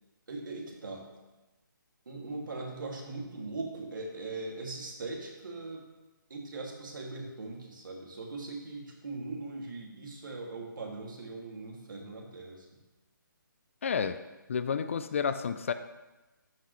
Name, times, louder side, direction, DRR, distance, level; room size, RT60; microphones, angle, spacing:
voice 1, 0.3-1.1 2.1-5.8 6.3-12.7, right 3 dB, 70° right, -1 dB, 2.4 m, -40 dB
voice 2, 13.8-14.2 14.5-15.7, left 6 dB, 40° left, 11 dB, 0.4 m, -30 dB
13.0 x 5.8 x 3.2 m, 1.1 s
hypercardioid pair, 160°, 11 cm